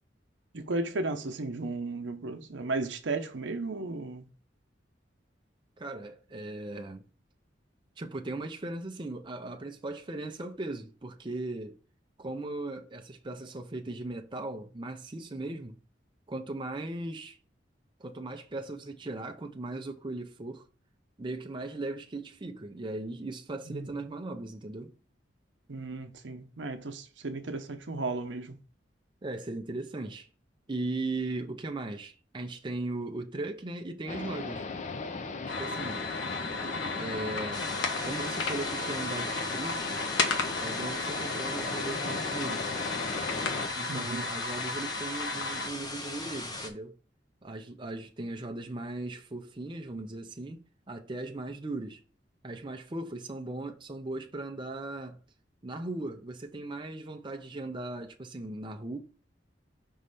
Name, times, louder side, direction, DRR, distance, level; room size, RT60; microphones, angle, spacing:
voice 1, 0.5-4.3 23.7-23.9 25.7-28.6 43.8-44.3, right 3 dB, 75° right, 0.8 m, -34 dB
voice 2, 5.8-7.0 8.0-11.8 12.2-15.8 16.3-17.4 18.0-20.6 21.2-24.9 29.2-30.3 30.7-34.6 35.6-36.1 37.0-37.7 38.0-40.0 40.6-42.7 43.7-47.0 47.4-52.0 52.4-55.2 55.6-59.0, right 2 dB, 25° right, 0.6 m, -38 dB
sound 1, 34.1-43.7, left 3 dB, 40° left, 0.6 m, -37 dB
sound 2, 35.5-45.7, left 3 dB, 85° left, 1.1 m, -34 dB
sound 3, 37.5-46.7, left 2 dB, 20° left, 1.0 m, -39 dB
5.5 x 3.2 x 5.3 m
head